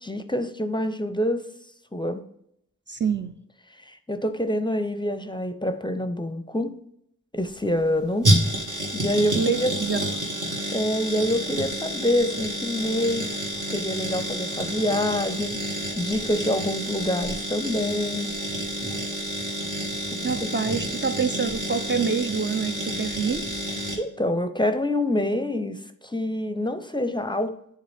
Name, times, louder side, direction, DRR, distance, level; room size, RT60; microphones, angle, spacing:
voice 1, 0.0-1.5 1.9-2.2 3.8-6.8 7.3-8.4 8.9-9.7 10.7-13.4 13.7-18.3 20.1-20.5 24.0-27.6, left 1 dB, 15° left, 0.6 m, -26 dB
voice 2, 2.9-3.4 9.3-10.1 20.2-23.4, right 5 dB, 35° right, 0.5 m, -26 dB
sound 1, 7.4-24.0, equal, 65° right, 1.8 m, -29 dB
8.1 x 3.8 x 3.4 m
cardioid pair, 40°, 33 cm